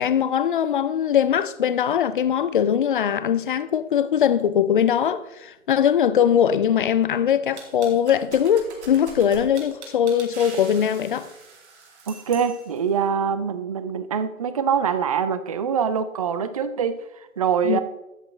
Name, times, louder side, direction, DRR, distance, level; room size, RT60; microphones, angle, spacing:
voice 1, 0.0-11.3 17.6-17.8, left 9 dB, 40° left, 0.5 m, -21 dB
sound 1, 7.6-12.9, right 4 dB, 55° right, 2.8 m, -42 dB
voice 2, 12.1-17.8, right 7 dB, 30° right, 0.4 m, -24 dB
13.5 x 8.7 x 3.2 m
figure-of-eight pair, 130°, 41 cm